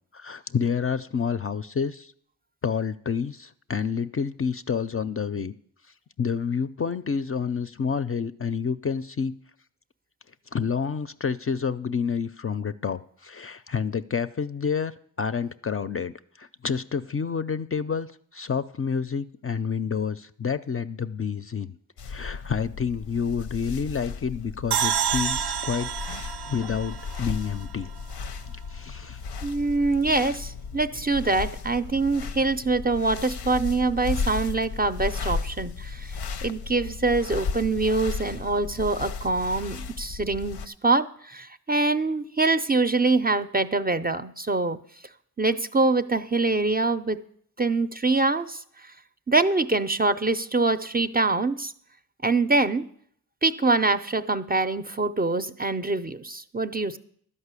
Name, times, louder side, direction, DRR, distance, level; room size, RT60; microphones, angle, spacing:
voice 1, 0.1-2.1 2.6-5.5 6.2-9.3 10.5-18.1 18.3-21.7 22.0-26.2 26.5-27.9 28.5-29.2, left 6 dB, 35° left, 12 dB, 0.4 m, -29 dB
sound 1, 22.0-40.7, left 5 dB, 90° left, 0.7 m, -35 dB
sound 2, 24.7-28.0, right 9 dB, 90° right, 0.5 m, -29 dB
voice 2, 29.4-44.8 45.4-47.2 47.6-48.6 49.3-51.7 52.2-52.9 53.4-57.0, right 3 dB, 25° right, 10 dB, 0.4 m, -24 dB
12.0 x 5.5 x 8.1 m, 0.64 s
wide cardioid pair, 85°, 39 cm